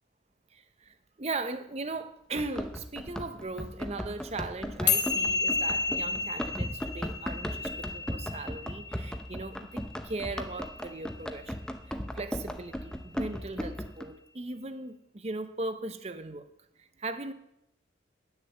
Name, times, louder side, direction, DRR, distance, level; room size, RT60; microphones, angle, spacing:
voice 1, 0.5-11.5 11.9-16.5 16.8-17.3, right 2 dB, 35° right, 10 dB, 0.7 m, -38 dB
Run, 2.3-14.0, equal, 5° left, 0.7 m, -37 dB
sound 1, 4.9-11.4, left 5 dB, 65° left, 1.3 m, -32 dB
9.8 x 6.5 x 7.9 m, 0.82 s
head